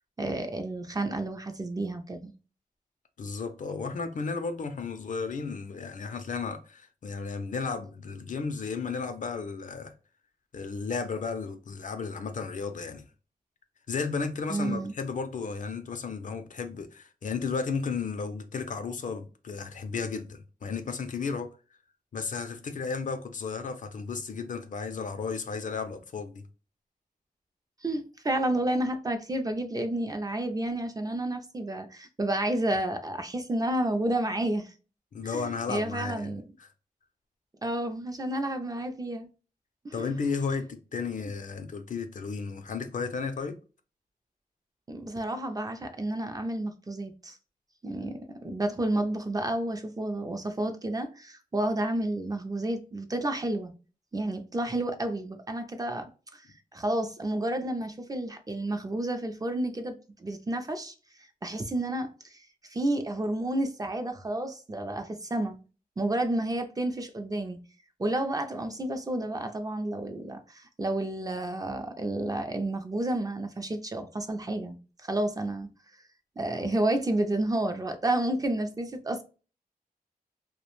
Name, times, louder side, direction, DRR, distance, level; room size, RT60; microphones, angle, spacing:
voice 1, 0.2-2.3 14.5-14.9 27.8-34.7 35.2-36.5 37.6-39.3 39.8-40.0 44.9-47.4 47.8-53.7 54.1-56.4 56.7-59.9 60.2-60.9 61.4-65.6 66.0-67.6 68.0-74.8 75.0-75.7 76.4-79.2, right 1 dB, 25° right, 0.4 m, -30 dB
voice 2, 3.2-9.9 10.5-13.0 13.9-21.5 22.1-26.5 35.1-36.3 36.6-36.7 39.9-43.6, left 5 dB, 60° left, 0.4 m, -34 dB
2.4 x 2.1 x 3.0 m
wide cardioid pair, 105°, 15 cm